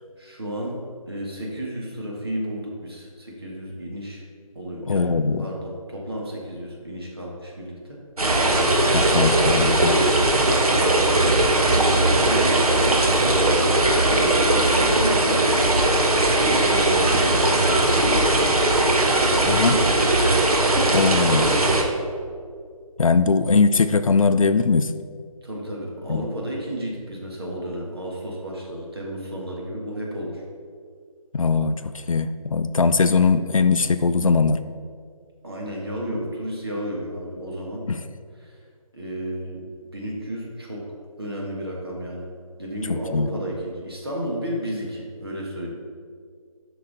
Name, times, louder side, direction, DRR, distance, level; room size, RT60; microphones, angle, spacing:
voice 1, 0.2-0.8 1.1-4.2 4.5-5.1 5.4-8.0 11.1-18.3 18.7-20.2 21.1-22.0 25.4-30.4 35.4-37.9 38.3-38.6 38.9-40.9 41.2-42.3 42.6-45.7, equal, 40° right, -2 dB, 1.4 m, -32 dB
voice 2, 4.9-5.5 8.8-10.0 19.5-19.7 20.9-21.5 23.0-24.9 26.1-26.2 31.3-31.7 32.1-34.6 37.9-38.0 42.9-43.3, left 4 dB, 65° left, 11 dB, 0.4 m, -20 dB
sound 1, 8.2-21.8, right 2 dB, 75° right, 1.2 m, -19 dB
7.7 x 5.5 x 3.9 m, 2.1 s
figure-of-eight pair, 180°, 19 cm